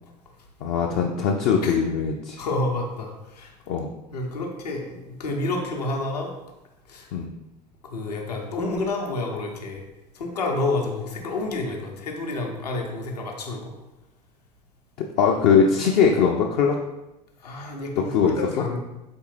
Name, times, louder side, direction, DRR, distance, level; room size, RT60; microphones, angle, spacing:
voice 1, 0.6-2.4 3.7-3.9 7.1-7.3 15.0-16.8 18.0-18.4, left 6 dB, 45° left, 1 dB, 0.4 m, -21 dB
voice 2, 2.4-3.5 4.1-6.3 6.9-7.1 7.8-9.8 10.1-13.7 17.4-18.8, left 2 dB, 75° left, 1 dB, 0.8 m, -29 dB
4.3 x 3.3 x 3.1 m, 0.96 s
figure-of-eight pair, 70°, 21 cm